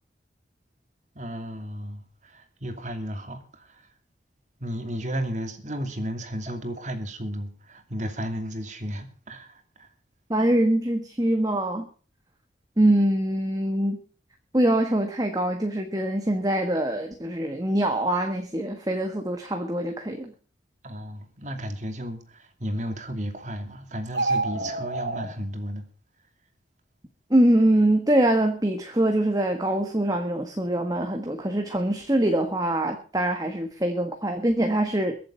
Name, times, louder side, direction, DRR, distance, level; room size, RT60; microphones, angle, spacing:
voice 1, 1.1-3.9 4.6-9.9 20.8-25.8, equal, 40° right, 2.6 m, -34 dB
voice 2, 10.3-11.9 12.8-14.0 14.5-20.3 27.3-35.1, right 1 dB, 20° right, 1.5 m, -23 dB
sound 1, 24.1-25.3, right 2 dB, 70° right, 3.7 m, -27 dB
22.5 x 7.8 x 5.6 m
head